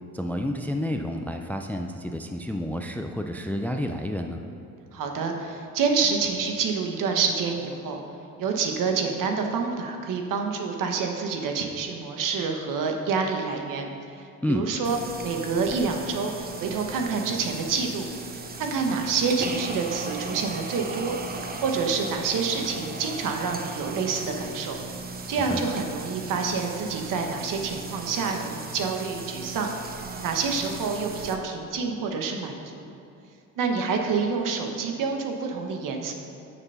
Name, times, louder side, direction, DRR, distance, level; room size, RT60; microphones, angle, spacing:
voice 1, 0.1-4.4 14.4-14.7 25.5-25.6, left 1 dB, 5° left, 5 dB, 0.3 m, -30 dB
voice 2, 4.9-8.0 8.4-13.9 14.1-16.3 16.6-18.1 18.5-21.2 21.6-24.8 25.3-29.7 30.2-32.9 33.6-36.1, right 5 dB, 70° right, 3 dB, 1.2 m, -27 dB
sound 1, 14.8-31.4, right 3 dB, 25° right, 0.8 m, -37 dB
6.9 x 6.8 x 5.6 m, 2.6 s
cardioid pair, 120°, 34 cm